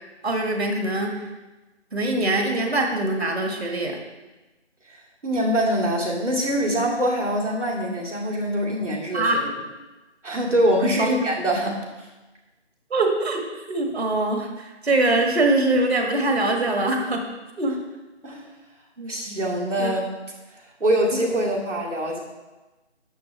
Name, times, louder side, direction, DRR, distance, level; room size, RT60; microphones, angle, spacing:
voice 1, 0.2-1.2 1.9-4.0 9.1-9.4 11.0-11.1 12.9-13.4 13.7-17.2 17.6-17.8 19.0-19.4 19.8-19.9, right 2 dB, 60° right, 2 dB, 1.7 m, -23 dB
voice 2, 5.2-9.4 10.2-11.9 18.2-18.4 19.1-20.1 20.8-22.2, equal, 85° right, -3 dB, 2.6 m, -24 dB
11.0 x 7.2 x 3.2 m, 1.1 s
figure-of-eight pair, 155°, 35 cm